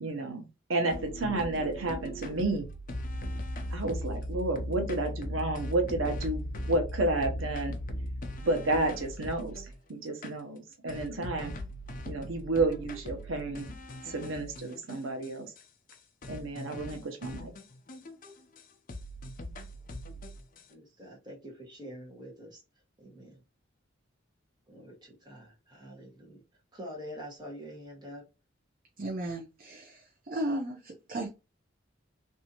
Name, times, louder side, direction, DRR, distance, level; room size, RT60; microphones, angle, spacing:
voice 1, 0.0-2.7 3.7-7.7 8.4-9.6 9.9-11.5 12.1-13.7 14.1-15.5 16.3-17.5, right 2 dB, 90° right, 0.9 m, -31 dB
sound 1, 0.9-9.8 10.2-10.3 10.9-15.3 15.6-15.7 15.9-16.0 16.2-18.6 18.9-20.6, equal, 45° left, 0.6 m, -39 dB
voice 2, 20.7-22.6 23.0-23.4 24.7-26.4 26.7-28.2, equal, 20° right, 1.4 m, -46 dB
voice 3, 29.0-31.3, right 1 dB, 50° right, 0.6 m, -35 dB
3.3 x 2.7 x 2.8 m
head